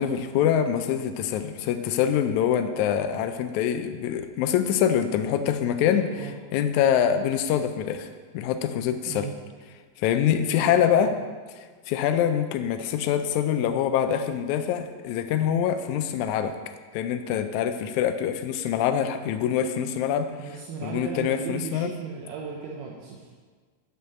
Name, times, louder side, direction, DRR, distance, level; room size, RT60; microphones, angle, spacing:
voice 1, 0.0-6.1 6.5-9.3 10.0-11.1 11.9-16.5 16.9-20.3 20.8-21.9, left 9 dB, 80° left, 8 dB, 1.7 m, -25 dB
voice 2, 5.8-6.4 9.1-9.3 10.4-11.1 20.4-23.3, right 6 dB, 80° right, -2 dB, 2.4 m, -36 dB
7.7 x 5.6 x 6.4 m, 1.5 s
omnidirectional pair, 4.0 m